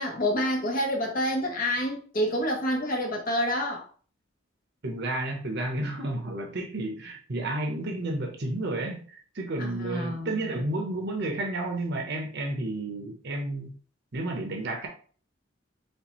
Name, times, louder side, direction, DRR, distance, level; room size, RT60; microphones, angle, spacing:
voice 1, 0.0-3.8 9.6-10.3, equal, 45° left, 0.8 m, -28 dB
voice 2, 4.8-9.0 9.3-13.7 14.1-14.9, right 2 dB, 55° right, 0.8 m, -31 dB
4.4 x 3.1 x 3.0 m
head